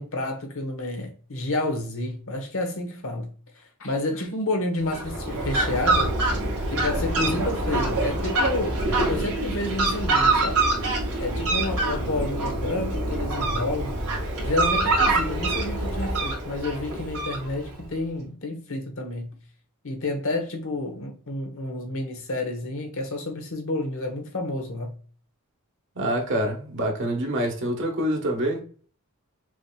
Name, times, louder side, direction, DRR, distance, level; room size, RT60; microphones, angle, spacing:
voice 1, 0.0-6.1 6.4-10.6 11.2-14.0 14.4-19.4 19.8-25.0, left 2 dB, 65° left, 1.1 m, -30 dB
Fowl, 4.8-17.8, right 2 dB, 85° right, 1.9 m, -25 dB
voice 2, 25.9-28.6, right 1 dB, 55° right, 1.2 m, -26 dB
6.2 x 2.9 x 2.2 m
head